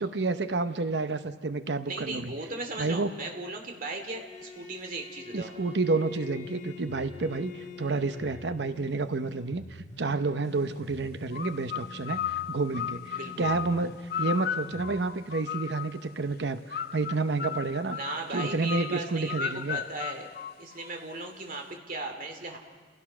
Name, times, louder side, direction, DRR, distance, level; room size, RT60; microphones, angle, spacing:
voice 1, 0.0-2.3 2.8-3.1 5.3-18.0 18.3-19.8, right 3 dB, 65° right, 11 dB, 0.8 m, -30 dB
voice 2, 1.9-5.5 13.1-13.5 17.9-20.3 20.6-22.6, right 2 dB, 50° right, 4 dB, 2.5 m, -37 dB
Bowed string instrument, 4.0-8.8, left 6 dB, 40° left, 6.0 m, -45 dB
sound 1, 6.4-15.0, left 2 dB, 80° left, 3.5 m, -47 dB
sound 2, 11.3-16.0 16.7-21.2, left 9 dB, 55° left, 0.5 m, -35 dB
29.0 x 16.0 x 6.1 m, 1.5 s
head